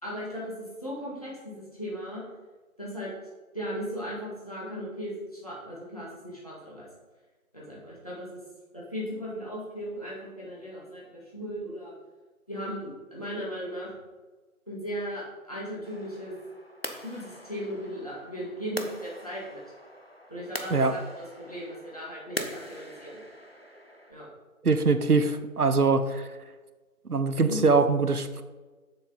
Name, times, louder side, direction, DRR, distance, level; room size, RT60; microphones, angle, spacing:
voice 1, 0.0-2.2 2.8-3.1 3.5-6.9 7.5-8.4 8.7-11.9 12.5-13.9 14.7-16.3 16.9-19.6 20.3-21.0 21.4-23.2 24.1-24.3 27.5-27.7, equal, 25° left, -6 dB, 1.8 m, -37 dB
sound 1, 15.8-24.1, equal, 45° left, 0.7 m, -42 dB
voice 2, 24.6-26.3 27.1-28.4, right 4 dB, 90° right, 10 dB, 0.9 m, -23 dB
7.7 x 6.9 x 3.9 m, 1.3 s
figure-of-eight pair, 175°, 44 cm